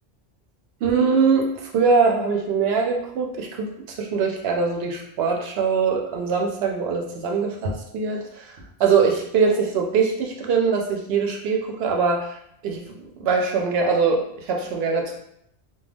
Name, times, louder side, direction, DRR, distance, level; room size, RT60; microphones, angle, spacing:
voice 1, 0.8-3.7 4.0-8.5 8.8-12.4 12.6-15.2, right 5 dB, 70° right, 1 dB, 0.8 m, -22 dB
2.3 x 2.2 x 3.3 m, 0.73 s
omnidirectional pair, 1.1 m